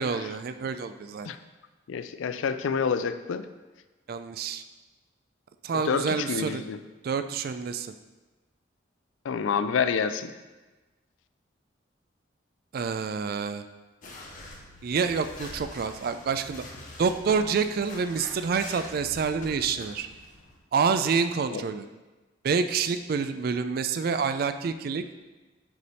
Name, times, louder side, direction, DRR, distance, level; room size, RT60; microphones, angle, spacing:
voice 1, 0.0-1.3 4.1-4.6 5.6-6.6 7.0-7.9 12.7-13.6 14.8-16.7 17.0-20.1 20.7-21.9 22.4-25.0, right 5 dB, 50° right, 10 dB, 0.3 m, -27 dB
voice 2, 1.9-3.5 5.7-6.8 9.2-10.3 21.5-21.6, left 6 dB, 80° left, 11 dB, 0.4 m, -28 dB
sound 1, 14.0-20.6, left 2 dB, 45° left, 0.9 m, -44 dB
6.8 x 3.3 x 5.3 m, 1.2 s
head